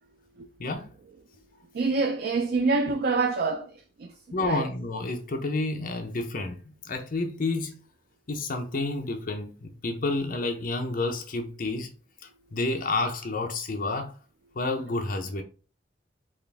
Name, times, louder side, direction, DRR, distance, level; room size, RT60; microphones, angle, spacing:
voice 1, 0.6-0.9 4.3-7.8 8.3-11.9 12.5-14.1 14.5-15.4, left 2 dB, 50° left, 0.7 m, -30 dB
voice 2, 1.7-3.7 4.0-4.1 4.4-4.7, right 3 dB, 60° right, 0.4 m, -25 dB
3.7 x 2.5 x 3.4 m
head